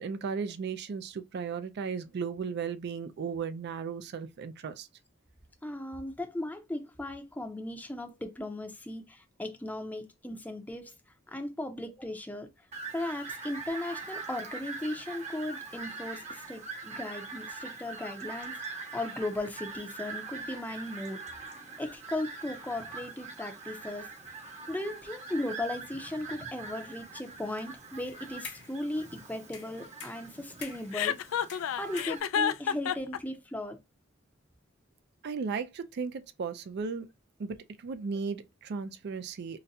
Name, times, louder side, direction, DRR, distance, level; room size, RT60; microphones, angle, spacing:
voice 1, 0.0-4.9 35.2-37.1 37.4-39.6, right 5 dB, 55° right, 0.4 m, -35 dB
voice 2, 5.6-10.9 11.3-12.5 12.9-21.3 21.8-24.1 24.7-31.2 31.8-33.8, left 1 dB, 10° left, 0.6 m, -37 dB
Fowl, 12.7-32.2, right 4 dB, 35° right, 0.9 m, -43 dB
sound 1, 28.0-28.8 29.5-31.0 31.5-32.6, left 7 dB, 60° left, 1.0 m, -46 dB
Chuckle chortle, 30.9-33.2, left 8 dB, 75° left, 0.3 m, -29 dB
3.9 x 2.2 x 2.6 m
head